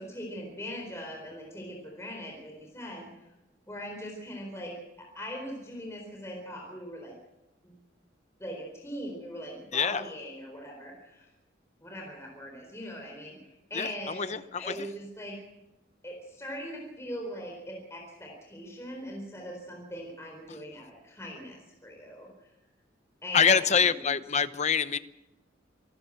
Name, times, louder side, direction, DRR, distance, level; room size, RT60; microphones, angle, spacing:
voice 1, 0.0-3.3 3.7-7.2 7.6-7.8 8.4-11.3 11.8-15.4 16.0-22.5 23.2-24.1, equal, 15° left, 1 dB, 4.1 m, -41 dB
voice 2, 9.7-10.0 13.7-14.9 20.5-20.6 23.3-25.0, left 6 dB, 35° left, 14 dB, 0.7 m, -26 dB
27.0 x 12.5 x 7.8 m, 0.97 s
head